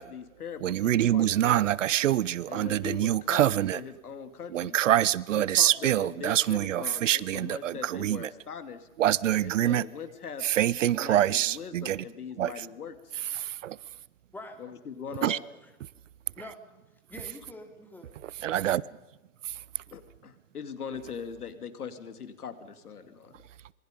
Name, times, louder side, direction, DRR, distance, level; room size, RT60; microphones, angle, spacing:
voice 1, 0.0-1.6 2.5-4.8 5.4-8.9 9.4-10.4 10.7-13.1 14.6-15.4 19.9-23.4, left 6 dB, 85° left, 10 dB, 2.8 m, -41 dB
voice 2, 0.6-3.8 4.5-8.3 9.0-9.8 10.4-12.0 12.4-12.7 13.3-13.8 15.2-15.4 18.4-18.8 19.4-19.5, right 12 dB, 55° right, 22 dB, 0.8 m, -25 dB
voice 3, 15.2-15.7 16.4-16.6 17.1-18.1, left 2 dB, 5° left, 4 dB, 2.6 m, -45 dB
26.5 x 23.0 x 5.2 m, 1.1 s
hypercardioid pair, 140°, 44 cm